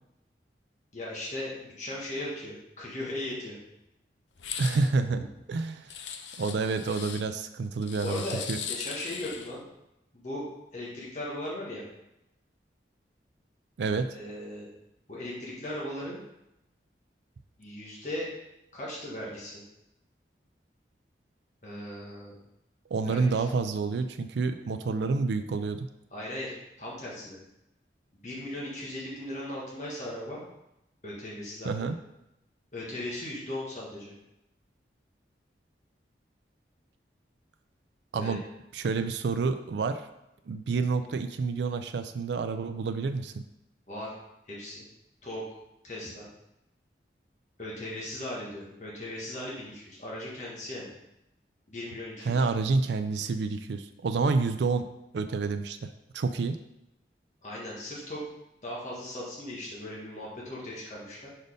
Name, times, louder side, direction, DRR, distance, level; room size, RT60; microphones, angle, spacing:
voice 1, 0.9-3.6 5.2-5.3 8.0-9.6 10.1-11.8 14.1-14.7 15.1-16.2 17.6-18.3 18.7-19.6 21.6-22.4 23.0-23.5 26.1-27.4 28.2-30.4 31.0-31.9 32.7-34.1 38.1-38.4 43.9-44.1 44.5-44.8 45.2-45.4 45.8-46.3 47.6-50.9 51.7-52.5 57.4-58.2 58.6-61.3, left 1 dB, 40° left, -6 dB, 1.6 m, -38 dB
sound 1, 4.4-4.9 5.9-7.2 7.8-9.6, left 7 dB, 90° left, 0.6 m, -39 dB
voice 2, 4.6-5.2 5.5-5.9 6.4-8.2 8.5-8.6 13.8-14.2 22.9-25.9 31.6-32.0 38.1-38.4 38.7-40.0 40.5-43.4 52.3-54.9 55.1-56.6, right 4 dB, 75° right, 8 dB, 0.4 m, -28 dB
5.2 x 4.2 x 5.0 m, 0.87 s
head